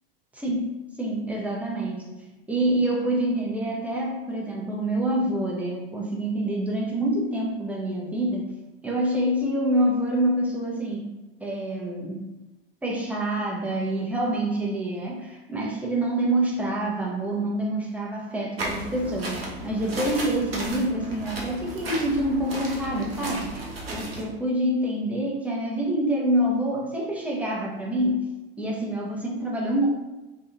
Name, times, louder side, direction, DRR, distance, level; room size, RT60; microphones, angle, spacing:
voice 1, 0.3-2.1 2.5-8.5 8.8-11.1 11.4-12.4 12.8-29.9, right 1 dB, 5° right, -3 dB, 0.5 m, -26 dB
sound 1, 18.6-24.2, right 1 dB, 85° right, 0.6 m, -34 dB
2.6 x 2.2 x 2.4 m, 1.1 s
figure-of-eight pair, 80°, 29 cm